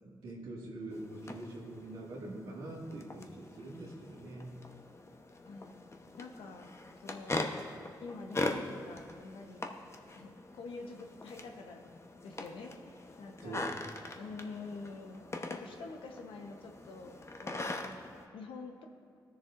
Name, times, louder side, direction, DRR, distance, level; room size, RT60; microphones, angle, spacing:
voice 1, 0.2-4.6 13.4-13.8, right 1 dB, 85° right, -5 dB, 2.0 m, -44 dB
sound 1, 0.9-18.3, left 2 dB, 30° left, 0.9 m, -42 dB
voice 2, 5.4-5.8 6.2-6.7 7.0-7.5 8.0-9.6 10.1-11.9 12.2-13.6 14.2-15.2 15.5-18.0 18.3-18.9, left 3 dB, 85° left, 3 dB, 0.9 m, -47 dB
16.5 x 6.8 x 2.5 m, 2.3 s
supercardioid pair, 50°, 9 cm